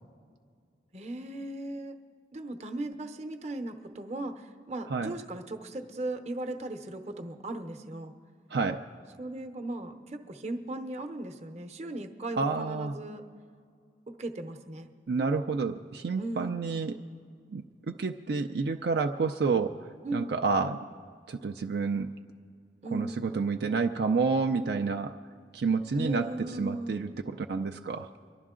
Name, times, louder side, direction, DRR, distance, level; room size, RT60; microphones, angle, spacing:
voice 1, 0.9-2.0 2.3-8.1 9.2-13.2 14.1-14.9 16.2-16.6 20.0-20.4 22.8-23.5 25.9-27.2, right 2 dB, 40° right, 6 dB, 0.8 m, -37 dB
voice 2, 8.5-8.8 12.4-12.9 15.1-16.9 17.5-19.7 20.1-20.8 21.3-22.1 22.9-25.1 25.5-28.1, right 4 dB, 65° right, 4 dB, 0.4 m, -29 dB
24.0 x 11.5 x 3.7 m, 2.1 s
head